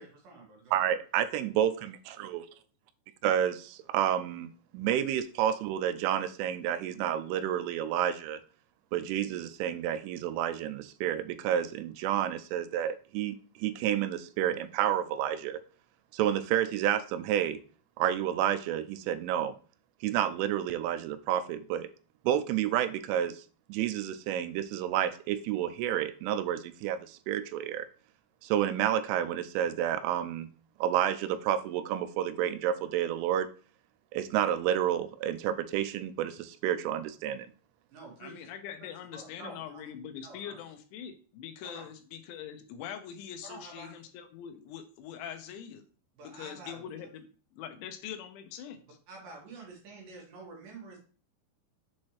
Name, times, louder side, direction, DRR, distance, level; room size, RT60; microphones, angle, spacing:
voice 1, 0.0-0.7 37.9-38.5 39.1-39.8 40.2-40.6 41.6-41.9 43.4-43.9 46.2-46.8 49.1-51.0, right 3 dB, 60° right, -2 dB, 2.7 m, -48 dB
voice 2, 0.7-2.5 3.2-8.4 8.9-15.6 16.1-17.6 18.0-19.6 20.0-21.9 22.2-23.4 23.7-27.9 28.4-30.5 30.8-33.5 34.1-37.5, right 10 dB, 90° right, 10 dB, 3.1 m, -30 dB
voice 3, 38.2-45.8 46.2-47.3 47.5-49.0, left 9 dB, 80° left, 7 dB, 3.0 m, -43 dB
7.5 x 4.3 x 3.1 m, 0.39 s
omnidirectional pair, 5.5 m